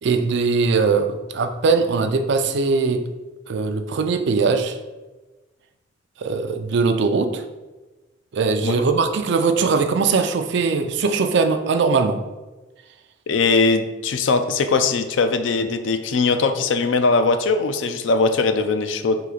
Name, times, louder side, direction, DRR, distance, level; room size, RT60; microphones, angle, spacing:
voice 1, 0.0-3.0 3.5-4.8 6.2-7.4 8.3-12.2, right 4 dB, 65° right, 8 dB, 0.4 m, -20 dB
voice 2, 13.3-19.2, left 4 dB, 80° left, 9 dB, 0.4 m, -20 dB
3.9 x 2.8 x 4.8 m, 1.2 s
head